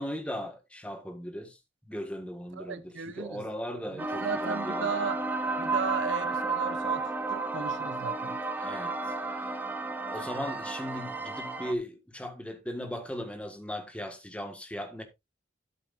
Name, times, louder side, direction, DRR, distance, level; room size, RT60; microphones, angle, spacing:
voice 1, 0.0-1.6 1.9-4.9 8.6-9.6 10.1-15.0, equal, 5° left, 1.5 m, -38 dB
voice 2, 2.6-3.4 4.0-5.2 5.6-8.4, right 5 dB, 90° right, 0.6 m, -35 dB
sound 1, 4.0-11.7, right 3 dB, 10° right, 0.9 m, -32 dB
12.0 x 8.1 x 2.5 m
head